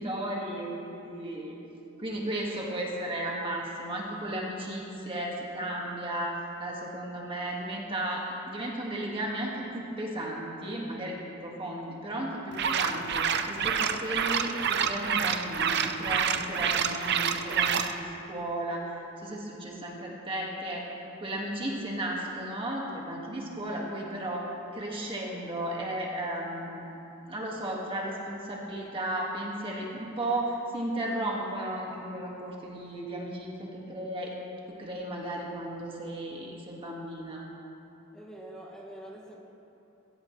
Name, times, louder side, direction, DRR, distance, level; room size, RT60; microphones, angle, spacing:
voice 1, 0.0-1.6 2.0-6.3 6.6-20.9 21.2-26.8 27.3-34.4 34.7-37.4, right 1 dB, 25° right, -3 dB, 1.8 m, -34 dB
sound 1, 12.5-17.9, right 7 dB, 55° right, 0.7 m, -28 dB
voice 2, 38.1-39.4, right 1 dB, 5° left, -4 dB, 1.9 m, -45 dB
21.5 x 15.0 x 3.2 m, 2.8 s
head